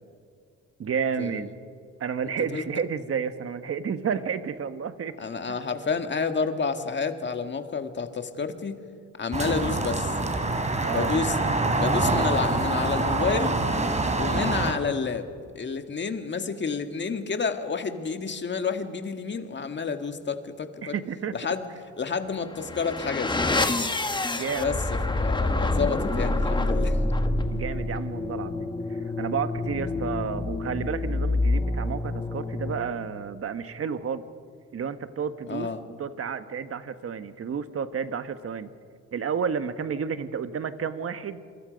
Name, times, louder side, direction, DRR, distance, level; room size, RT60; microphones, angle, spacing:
voice 1, 0.8-1.5 2.0-5.1 5.5-5.6 10.8-11.1 20.8-21.4 24.3-24.8 27.5-28.7 29.2-34.2 34.7-35.7 36.0-38.7 39.1-41.4, right 6 dB, 50° right, 10 dB, 1.4 m, -31 dB
voice 2, 5.2-8.8 9.2-10.1 10.9-11.4 11.8-13.6 14.2-15.3 15.6-20.9 21.3-21.7 22.0-23.8 24.6-27.0 35.5-35.8, left 5 dB, 35° left, 7 dB, 1.9 m, -29 dB
sound 1, 9.3-14.7, right 2 dB, 25° right, 3.2 m, -25 dB
sound 2, 22.4-33.1, left 2 dB, 15° left, 1.6 m, -27 dB
27.5 x 23.5 x 5.3 m, 2.2 s
cardioid pair, 90°, 30 cm